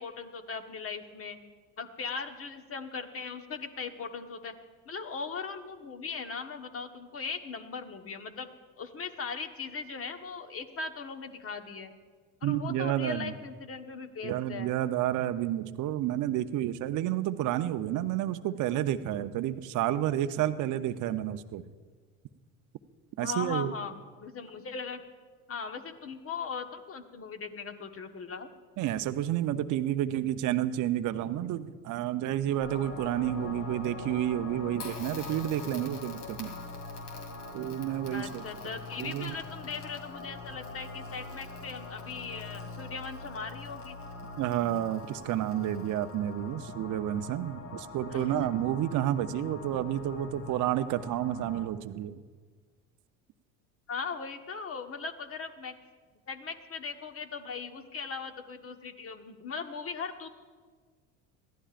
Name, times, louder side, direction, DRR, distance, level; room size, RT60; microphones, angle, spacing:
voice 1, 0.0-1.4 1.8-4.5 4.8-8.5 8.8-11.9 12.4-14.7 23.2-25.0 25.5-28.5 38.1-44.0 48.1-48.6 53.9-55.8 56.3-60.3, left 5 dB, 35° left, 7 dB, 1.3 m, -39 dB
voice 2, 12.4-13.3 14.2-21.6 23.2-23.7 28.8-36.5 37.5-38.4 39.0-39.3 44.4-52.2, right 12 dB, 50° right, 10 dB, 0.8 m, -30 dB
sound 1, 32.6-51.7, left 3 dB, 55° left, 1.7 m, -43 dB
Crackle, 34.7-46.3, left 4 dB, 70° left, 2.8 m, -51 dB
21.5 x 15.0 x 2.5 m, 1.5 s
hypercardioid pair, 75°, 39 cm